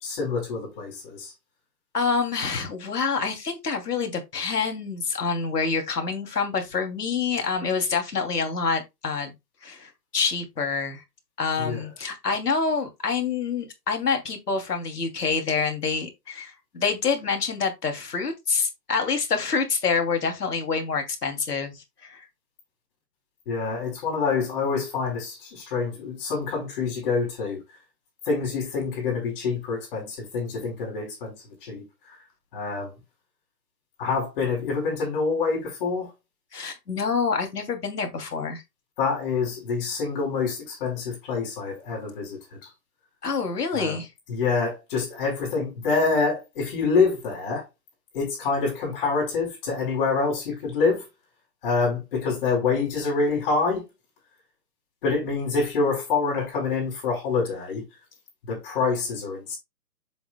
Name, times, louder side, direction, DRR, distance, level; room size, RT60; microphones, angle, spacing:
voice 1, 0.0-1.3 11.6-11.8 23.5-27.6 28.3-31.3 31.6-31.8 32.5-33.0 34.0-36.1 39.0-42.7 43.7-44.0 44.3-47.7 48.1-51.1 51.6-53.8 55.0-57.8 58.4-59.6, left 4 dB, 35° left, 4.4 m, -26 dB
voice 2, 1.9-9.3 9.6-11.0 11.4-22.3 36.5-38.6 43.2-44.1, left 5 dB, 70° left, 2.8 m, -27 dB
7.4 x 7.2 x 2.2 m
hypercardioid pair, 145°, 48 cm